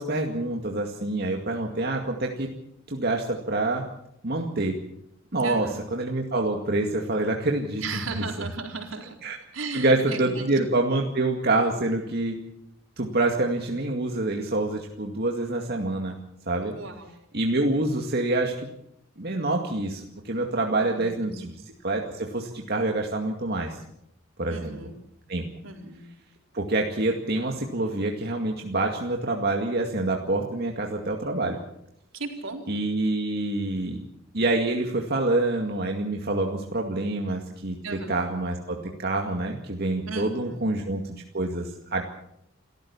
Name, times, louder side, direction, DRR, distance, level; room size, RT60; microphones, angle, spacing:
voice 1, 0.0-2.5 2.9-3.8 4.2-4.8 5.3-7.8 8.2-8.3 9.2-9.4 9.7-12.4 13.0-16.2 16.5-16.7 17.3-18.5 19.2-21.5 21.8-23.8 24.4-24.7 25.3-25.4 26.5-31.6 32.7-34.0 34.3-42.0, right 2 dB, 55° right, 1 dB, 2.2 m, -26 dB
voice 2, 5.4-5.8 7.8-9.1 9.5-10.5 16.7-17.1 20.7-21.5 24.5-25.0 25.6-26.1 32.1-32.6 37.8-38.2 40.1-40.6, right 4 dB, 80° right, 3 dB, 4.3 m, -36 dB
28.5 x 14.5 x 7.1 m, 0.76 s
head